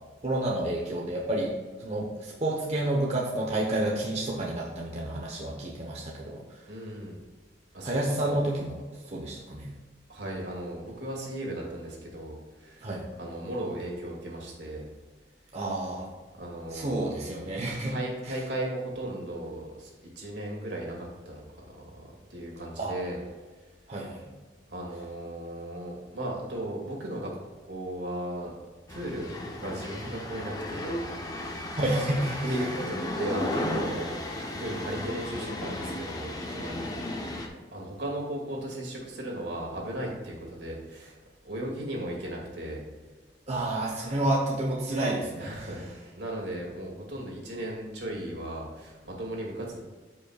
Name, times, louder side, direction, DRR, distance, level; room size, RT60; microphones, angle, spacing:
voice 1, 0.2-1.5 1.8-6.4 7.8-8.7 9.1-9.7 12.8-13.1 15.5-16.1 16.7-17.9 22.8-23.0 23.9-24.3 31.8-32.4 43.5-45.7, right 1 dB, 40° right, -3 dB, 1.1 m, -29 dB
voice 2, 6.7-7.2 7.7-8.4 10.1-12.9 13.2-14.8 16.3-17.3 17.9-23.2 23.6-23.7 24.7-27.3 27.7-28.5 28.9-31.0 31.3-31.8 32.4-34.2 34.6-36.8 37.5-41.2 41.4-42.8 45.4-49.8, right 1 dB, 75° right, -2 dB, 2.3 m, -36 dB
sound 1, 28.9-37.5, left 1 dB, 20° left, 0.9 m, -34 dB
13.5 x 5.5 x 2.4 m, 1.3 s
head